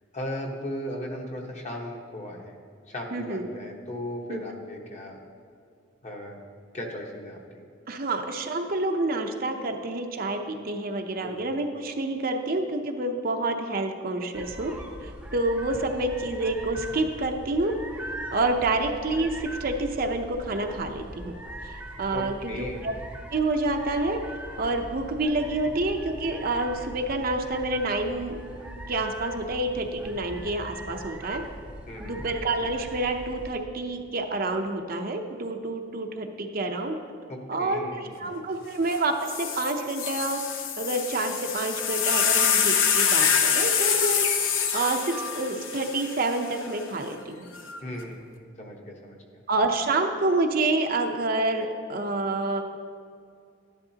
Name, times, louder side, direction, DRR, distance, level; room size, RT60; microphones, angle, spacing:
voice 1, 0.1-2.5 2.9-5.2 6.0-6.4 6.7-7.4 11.2-11.4 22.1-22.9 31.9-32.3 37.3-38.3 47.8-48.2 48.6-49.4, left 1 dB, 35° left, 0 dB, 1.2 m, -36 dB
voice 2, 3.1-3.5 4.3-4.4 7.9-14.7 15.0-17.7 18.3-21.3 21.6-22.9 23.3-24.2 24.6-28.4 28.9-31.4 32.0-37.0 37.5-40.4 40.8-44.2 44.7-47.5 49.5-52.6, right 2 dB, 50° right, 4 dB, 0.7 m, -28 dB
sound 1, 14.3-33.5, equal, 5° right, 0.7 m, -41 dB
sound 2, 38.9-39.0 39.3-46.7 47.5-48.0, left 7 dB, 85° left, 0.8 m, -25 dB
12.0 x 10.5 x 2.8 m, 2.3 s
head